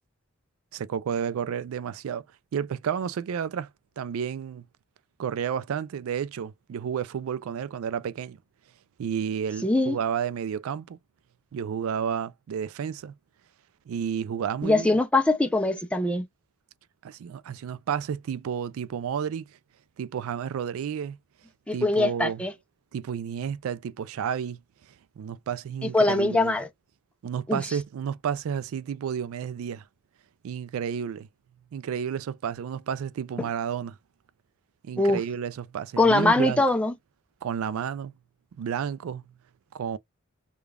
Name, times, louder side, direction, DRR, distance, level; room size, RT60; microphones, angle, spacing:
voice 1, 0.7-2.2 2.5-3.7 4.0-4.6 5.2-8.4 9.0-11.0 11.5-13.1 13.9-14.9 17.0-19.4 20.0-21.2 21.7-22.4 22.9-24.6 25.2-26.5 27.2-29.8 30.4-31.3 31.7-34.0 34.8-36.6 37.4-38.1 38.6-39.2 39.7-40.0, right 8 dB, 65° right, 0.3 m, -31 dB
voice 2, 9.6-10.0 14.6-16.3 21.7-22.5 25.8-26.7 27.5-27.6 33.4-33.5 35.0-35.2 36.0-36.9, left 2 dB, 5° left, 0.4 m, -22 dB
5.0 x 2.3 x 2.3 m
head